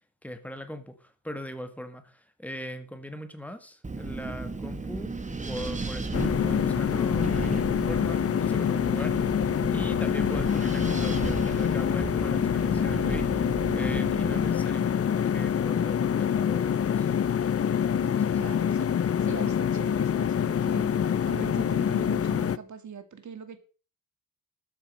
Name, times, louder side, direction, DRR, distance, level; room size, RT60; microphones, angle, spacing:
voice 1, 0.2-5.1 5.4-17.1, left 1 dB, 5° left, 8 dB, 1.8 m, -40 dB
Wind, 3.8-14.5, right 3 dB, 20° right, 1.4 m, -35 dB
sound 1, 6.1-22.6, left 8 dB, 40° left, 0.5 m, -26 dB
voice 2, 17.9-20.9 21.2-23.6, right 6 dB, 55° right, 8 dB, 2.4 m, -42 dB
13.5 x 9.9 x 5.5 m, 0.37 s
wide cardioid pair, 165°, 35 cm